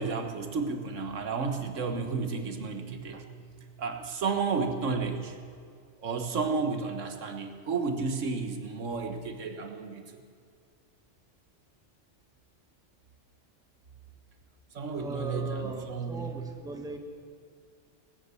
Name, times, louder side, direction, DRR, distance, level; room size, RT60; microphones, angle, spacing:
voice 1, 0.0-5.4 6.0-10.2 14.7-16.4, right 4 dB, 85° right, 6 dB, 1.6 m, -32 dB
voice 2, 14.9-17.0, right 1 dB, 5° right, 4 dB, 1.1 m, -38 dB
19.5 x 9.8 x 6.9 m, 2.1 s
omnidirectional pair, 1.3 m